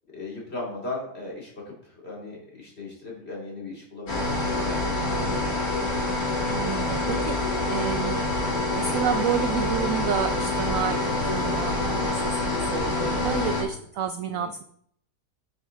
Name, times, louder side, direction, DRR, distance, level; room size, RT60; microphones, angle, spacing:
voice 1, 0.1-1.7 2.0-4.9 14.3-14.5, left 2 dB, 40° left, -3 dB, 3.0 m, -37 dB
sound 1, 4.1-13.6, left 2 dB, 60° left, 3.3 m, -26 dB
voice 2, 6.5-7.4 7.7-8.2 8.7-14.6, right 8 dB, 70° right, 9 dB, 0.8 m, -30 dB
9.3 x 6.2 x 3.8 m, 0.67 s
omnidirectional pair, 1.8 m